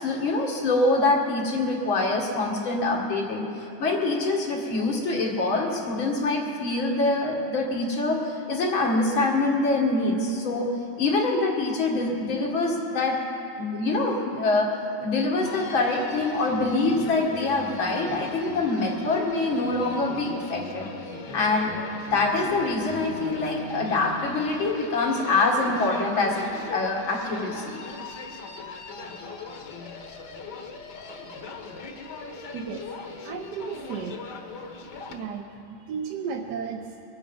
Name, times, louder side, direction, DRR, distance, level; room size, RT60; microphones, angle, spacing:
voice 1, 0.0-10.7 11.0-13.2 13.6-14.7 15.0-20.9 21.3-21.7 22.1-27.8, left 2 dB, 80° left, -1 dB, 2.6 m, -25 dB
Human voice, 15.5-35.3, left 3 dB, 60° left, 1.6 m, -39 dB
voice 2, 32.5-32.9 33.2-34.2 35.1-37.0, right 6 dB, 65° right, 3 dB, 1.2 m, -34 dB
23.0 x 8.9 x 5.4 m, 2.7 s
omnidirectional pair, 2.1 m